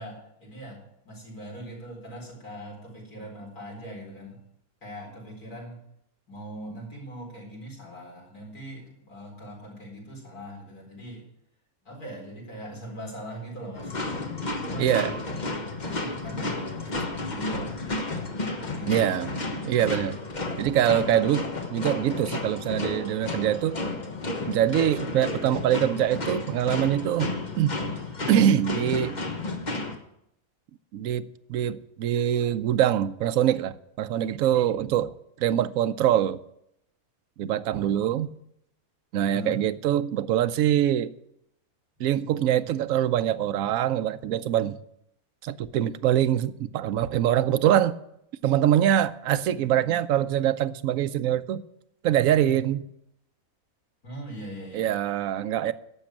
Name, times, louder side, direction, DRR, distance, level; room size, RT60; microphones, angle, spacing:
voice 1, 0.0-4.4 4.8-5.8 6.3-11.2 11.8-13.9 14.6-17.8 18.7-19.5 39.3-39.7 54.0-54.9, equal, 85° left, 4.9 m, -41 dB
sound 1, 13.8-29.9, left 2 dB, 30° left, 1.3 m, -32 dB
voice 2, 14.8-15.2 18.9-19.3 19.6-20.2 20.6-23.8 24.5-27.8 28.3-29.2 30.9-36.4 37.4-38.3 39.1-41.1 42.0-44.8 45.4-47.9 48.4-51.6 52.0-52.8 54.7-55.7, right 11 dB, 70° right, 1.0 m, -24 dB
11.5 x 7.2 x 8.8 m
omnidirectional pair, 1.6 m